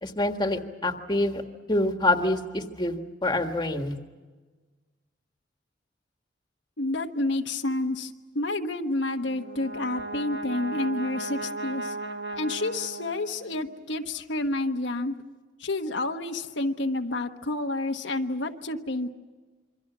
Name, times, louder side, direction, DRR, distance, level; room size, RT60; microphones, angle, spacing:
voice 1, 0.0-1.4 1.7-2.9 3.2-3.9, left 1 dB, 25° left, 5 dB, 1.6 m, -26 dB
voice 2, 6.8-11.9 12.3-15.1 15.6-19.1, left 2 dB, 80° left, 4 dB, 1.3 m, -29 dB
Brass instrument, 9.3-13.7, right 2 dB, 65° right, 1.4 m, -36 dB
27.5 x 24.0 x 6.2 m, 1.4 s
head